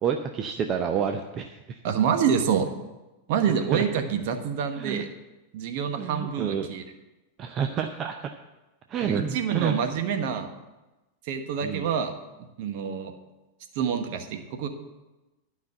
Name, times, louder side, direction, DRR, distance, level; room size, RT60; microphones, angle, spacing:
voice 1, 0.0-1.8 3.7-3.8 4.8-5.0 6.0-6.7 7.4-8.3 8.9-9.8 11.6-11.8, right 7 dB, 30° right, 5 dB, 0.7 m, -29 dB
voice 2, 1.8-2.7 3.3-5.1 5.5-6.8 9.0-10.5 11.2-12.1 12.6-13.1 13.7-14.7, right 7 dB, 50° right, 6 dB, 1.3 m, -27 dB
12.0 x 5.7 x 7.7 m, 1.1 s
figure-of-eight pair, 90°, 0 cm